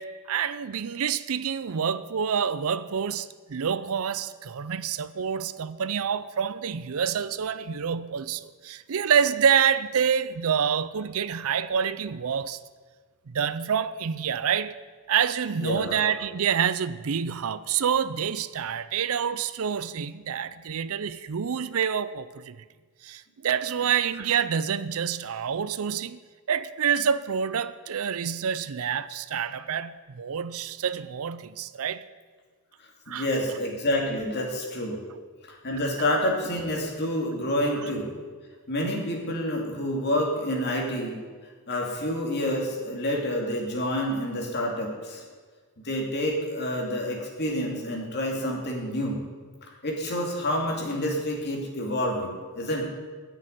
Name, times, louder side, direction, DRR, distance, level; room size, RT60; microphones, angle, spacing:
voice 1, 0.0-12.6 13.3-14.8 15.1-22.6 23.0-26.2 26.5-32.1 33.1-33.3 37.8-37.9, right 7 dB, 65° right, 0.5 m, -27 dB
voice 2, 15.6-16.0 33.1-35.0 35.5-38.1 38.7-41.2 41.7-45.2 45.8-49.2 49.8-52.8, left 1 dB, 50° left, 2.5 m, -28 dB
10.5 x 6.5 x 9.0 m
head